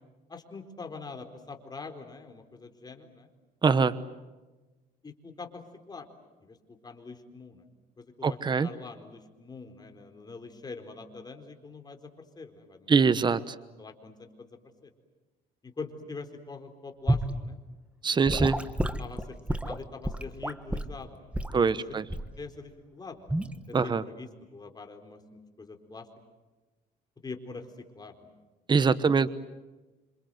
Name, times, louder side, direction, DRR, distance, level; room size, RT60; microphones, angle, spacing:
voice 1, 0.3-3.3 5.0-6.1 6.4-7.6 8.0-12.1 12.4-13.1 13.8-14.5 14.8-14.9 15.6-17.6 19.0-19.4 19.6-22.0 22.4-23.4 23.8-26.1 27.2-28.3 28.8-29.0, left 4 dB, 25° left, 6 dB, 4.3 m, -44 dB
voice 2, 3.6-3.9 8.2-8.7 12.9-13.5 18.0-18.6 21.5-22.0 23.7-24.0 28.7-29.3, right 5 dB, 25° right, 14 dB, 1.1 m, -23 dB
Gurgling / Sink (filling or washing) / Liquid, 17.1-17.3 18.3-21.0 21.3-21.6 22.1-22.4 23.3-23.5, right 1 dB, 5° right, 1.7 m, -29 dB
27.5 x 27.0 x 7.9 m, 1.2 s
cardioid pair, 110°, 17 cm